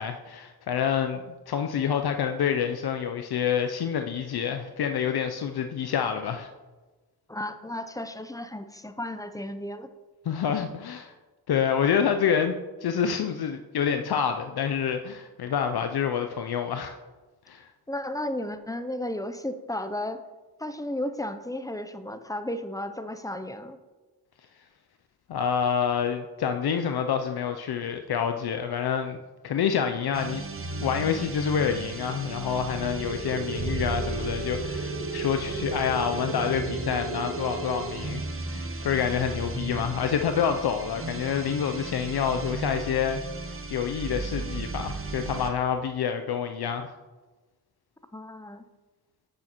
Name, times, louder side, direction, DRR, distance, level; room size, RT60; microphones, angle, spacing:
voice 1, 0.0-6.5 10.3-11.1 11.5-17.0 17.5-17.7 25.3-29.2 29.4-30.4 30.8-38.2 38.5-43.2 43.5-46.9, left 7 dB, 75° left, 6 dB, 0.5 m, -27 dB
voice 2, 7.3-9.9 17.9-20.2 20.6-23.8 48.1-48.7, left 1 dB, 10° left, 10 dB, 0.5 m, -34 dB
sound 1, 30.1-45.6, right 3 dB, 35° right, 0.8 m, -35 dB
sound 2, 32.8-37.8, right 2 dB, 60° right, 1.1 m, -35 dB
8.1 x 6.4 x 2.9 m, 1.2 s
cardioid pair, 40°, 39 cm